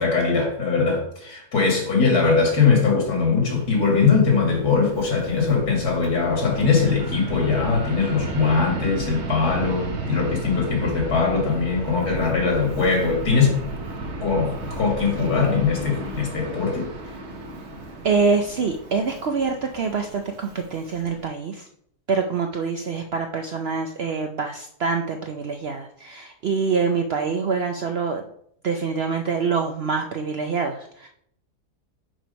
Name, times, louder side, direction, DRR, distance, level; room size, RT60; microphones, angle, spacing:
voice 1, 0.0-13.6 14.2-16.9, left 5 dB, 80° left, 0 dB, 2.4 m, -21 dB
Fixed-wing aircraft airplane, 3.4-21.3, right 2 dB, 50° right, 1.2 m, -34 dB
voice 2, 18.0-21.7 22.1-28.2 28.6-31.1, right 5 dB, 65° right, 5 dB, 0.6 m, -25 dB
6.1 x 4.6 x 5.1 m, 0.69 s
omnidirectional pair, 1.7 m